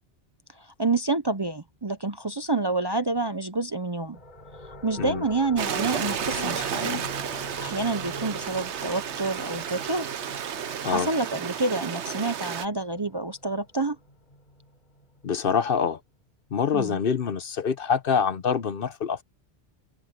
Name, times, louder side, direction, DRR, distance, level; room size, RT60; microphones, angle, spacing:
voice 1, 0.6-4.2 4.6-7.1 7.6-10.1 10.6-14.0 16.7-17.0, right 3 dB, 30° right, 0.6 m, -28 dB
sound 1, 4.1-15.5, left 1 dB, 40° left, 4.6 m, -45 dB
Stream, 5.6-12.7, right 8 dB, 80° right, 1.2 m, -32 dB
voice 2, 15.2-16.0 16.5-19.2, left 6 dB, 55° left, 0.9 m, -26 dB
omnidirectional pair, 1.1 m